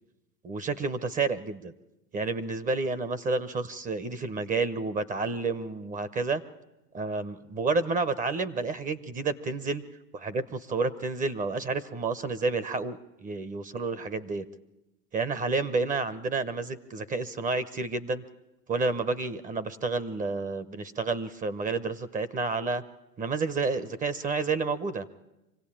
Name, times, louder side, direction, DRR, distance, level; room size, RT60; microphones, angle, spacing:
voice 1, 0.4-1.7 2.1-6.4 6.9-9.8 10.1-14.5 15.1-18.2 18.7-22.8 23.2-25.1, right 3 dB, 15° right, 15 dB, 0.7 m, -30 dB
25.0 x 16.5 x 8.7 m, 0.96 s
hypercardioid pair, 110°, 48 cm